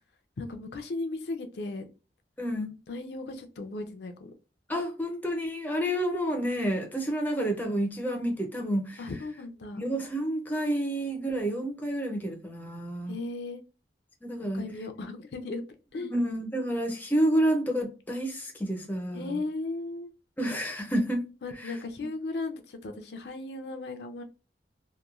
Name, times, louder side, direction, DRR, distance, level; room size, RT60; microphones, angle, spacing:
voice 1, 0.4-1.8 2.9-4.3 9.0-9.8 13.1-13.6 14.5-15.6 15.9-16.1 19.1-20.1 21.4-24.2, left 3 dB, 65° left, 0.4 m, -36 dB
voice 2, 2.4-2.7 4.7-9.0 9.8-13.2 14.2-14.7 16.1-19.4 20.4-21.3 21.6-21.7, right 1 dB, 10° left, 0.4 m, -29 dB
2.9 x 2.1 x 2.3 m
head